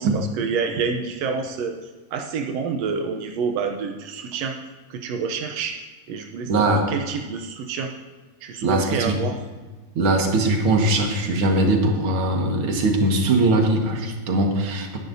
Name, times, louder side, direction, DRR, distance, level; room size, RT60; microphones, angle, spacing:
voice 1, 0.0-1.8 2.1-4.6 4.9-5.8 6.1-7.9 8.4-9.4, right 5 dB, 85° right, 4 dB, 1.4 m, -28 dB
voice 2, 6.5-6.9 8.6-9.2 10.0-15.0, right 2 dB, 50° right, 2 dB, 1.9 m, -21 dB
20.0 x 10.5 x 2.7 m, 1.3 s
omnidirectional pair, 3.9 m